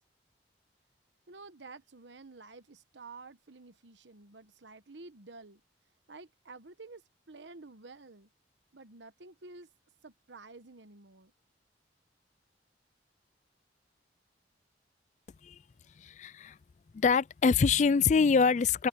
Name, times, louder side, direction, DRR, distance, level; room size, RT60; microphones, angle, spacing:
voice 1, 1.3-5.6 6.1-8.3 8.7-9.7 10.0-11.3, right 3 dB, 80° right, 1.2 m, -50 dB
voice 2, 16.0-16.6 16.9-18.9, left 5 dB, 40° left, 0.3 m, -25 dB
head